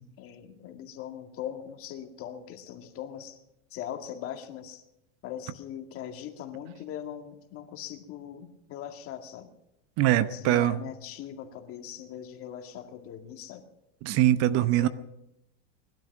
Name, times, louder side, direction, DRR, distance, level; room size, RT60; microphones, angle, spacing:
voice 1, 0.2-3.4 3.7-4.8 5.2-9.5 10.2-13.6 14.6-14.9, left 10 dB, 40° left, 5 dB, 2.1 m, -40 dB
voice 2, 10.0-10.8 14.0-14.9, right 13 dB, 50° right, 14 dB, 0.9 m, -23 dB
20.0 x 12.0 x 6.0 m, 0.84 s
supercardioid pair, 125°, 33 cm